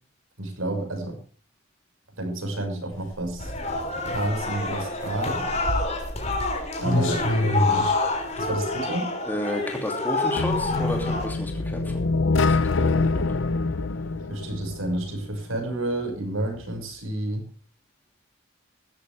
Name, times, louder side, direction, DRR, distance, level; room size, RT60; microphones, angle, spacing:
voice 1, 0.4-1.2 2.2-3.5 4.0-5.4 6.8-8.0 8.4-9.1 14.3-17.5, right 1 dB, 85° right, 5 dB, 6.0 m, -30 dB
sound 1, 2.9-8.7, left 1 dB, 90° left, 6.5 m, -28 dB
sound 2, 3.4-11.3, left 3 dB, 30° left, 3.8 m, -28 dB
voice 2, 9.3-12.1 12.4-13.2, equal, 10° left, 2 dB, 2.8 m, -32 dB
sound 3, 10.4-15.3, left 3 dB, 70° left, 0.7 m, -25 dB
17.0 x 13.5 x 3.5 m, 0.39 s
head